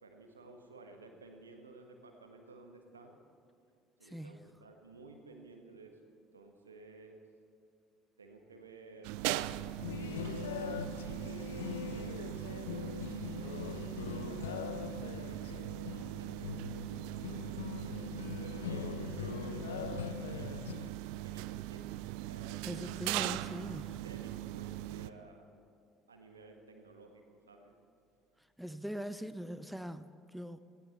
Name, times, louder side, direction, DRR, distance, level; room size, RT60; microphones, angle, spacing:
voice 1, 0.0-3.2 4.0-7.2 8.2-13.0 13.9-20.5 21.2-25.5 26.1-27.7, right 3 dB, 85° right, 1.4 m, -55 dB
sound 1, 9.0-25.1, right 15 dB, 65° right, 0.3 m, -40 dB
sound 2, 9.8-20.9, left 8 dB, 75° left, 0.5 m, -42 dB
voice 2, 22.6-24.0 28.6-30.6, equal, ahead, 0.6 m, -42 dB
18.0 x 16.0 x 4.3 m
figure-of-eight pair, 60°, 0 cm